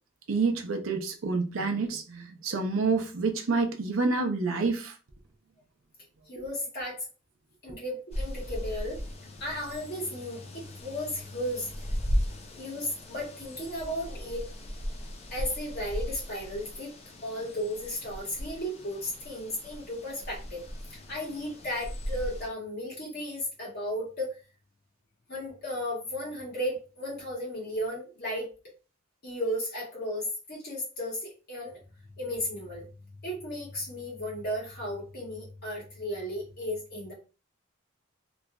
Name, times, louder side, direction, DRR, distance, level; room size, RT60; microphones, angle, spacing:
voice 1, 0.3-4.9, right 4 dB, 70° right, 0.6 m, -28 dB
voice 2, 6.3-7.0 7.6-9.0 9.4-11.9 12.6-14.4 15.3-16.9 17.2-20.6 20.9-24.3 25.3-28.5 29.2-31.7 32.2-32.9 33.2-37.1, equal, 50° left, 1.4 m, -35 dB
sound 1, 8.1-22.5, equal, 30° left, 0.5 m, -37 dB
3.0 x 2.4 x 2.2 m
head